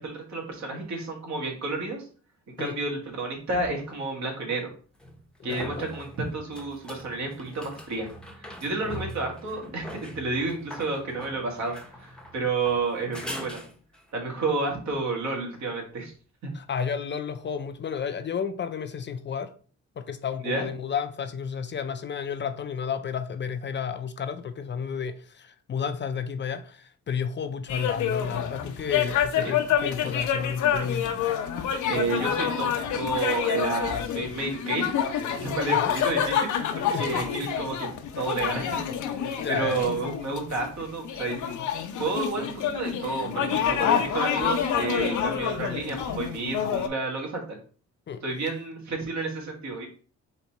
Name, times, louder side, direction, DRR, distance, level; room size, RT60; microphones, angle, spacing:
voice 1, 0.0-2.0 2.6-4.7 5.4-8.1 8.4-13.6 14.1-16.1 16.4-16.5 20.4-20.6 29.4-29.5 31.8-34.9 35.4-37.9 38.2-38.8 39.1-41.4 42.0-47.6 48.2-49.9, right 3 dB, 65° right, 1.8 m, -30 dB
sound 1, 3.6-3.7 5.0-14.1 17.5-17.6, equal, 5° left, 0.8 m, -42 dB
voice 2, 5.4-5.9 8.9-9.1 16.5-19.5 20.0-31.1 35.7-35.9 36.9-37.3 39.4-39.9 48.1-48.2, left 7 dB, 40° left, 0.5 m, -32 dB
sound 2, 27.7-46.9, left 8 dB, 75° left, 0.7 m, -28 dB
4.1 x 2.8 x 4.4 m
cardioid pair, 90°, 30 cm